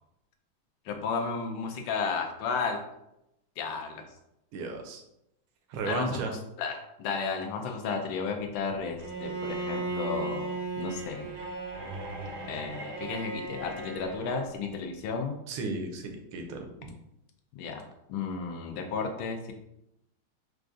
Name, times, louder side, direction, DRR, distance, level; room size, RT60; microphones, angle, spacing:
voice 1, 0.8-2.8 3.6-4.0 5.8-6.2 6.6-11.3 12.5-15.4 17.5-17.8 18.1-19.5, left 5 dB, 85° left, 4 dB, 1.4 m, -33 dB
voice 2, 4.5-5.0 5.7-6.3 15.5-17.0, right 3 dB, 85° right, 3 dB, 1.5 m, -34 dB
Bowed string instrument, 9.0-14.5, right 3 dB, 70° right, 0.8 m, -36 dB
4.7 x 2.3 x 2.5 m, 0.84 s
omnidirectional pair, 2.3 m